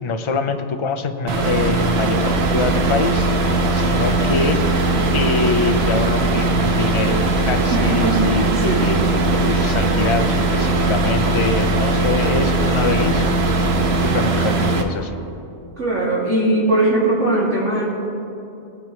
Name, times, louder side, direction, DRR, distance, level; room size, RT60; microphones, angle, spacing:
voice 1, 0.0-4.6 5.1-13.7 14.0-15.2, left 4 dB, 30° left, 6 dB, 0.6 m, -24 dB
sound 1, 1.3-14.8, right 2 dB, 65° right, 1.2 m, -19 dB
voice 2, 7.7-9.0 15.8-17.9, right 2 dB, 90° right, -8 dB, 3.1 m, -20 dB
20.0 x 9.9 x 3.2 m, 2.7 s
omnidirectional pair, 1.2 m